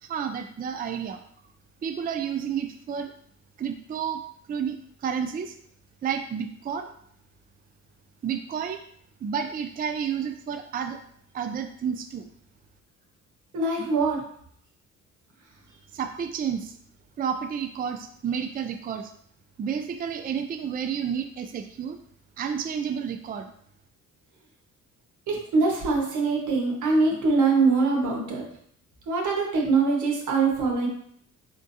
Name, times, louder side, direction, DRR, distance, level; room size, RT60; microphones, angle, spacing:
voice 1, 0.0-1.2 1.8-3.1 3.6-4.2 4.5-5.6 6.0-6.9 8.2-8.8 9.2-11.0 11.3-12.3 15.9-16.8 17.2-19.1 19.6-22.0 22.4-23.5, right 7 dB, 30° right, 6 dB, 0.4 m, -30 dB
voice 2, 13.5-14.2 25.3-28.5 29.1-30.9, right 4 dB, 80° right, 0 dB, 1.4 m, -23 dB
5.4 x 3.7 x 2.7 m, 0.65 s
cardioid pair, 90°, 30 cm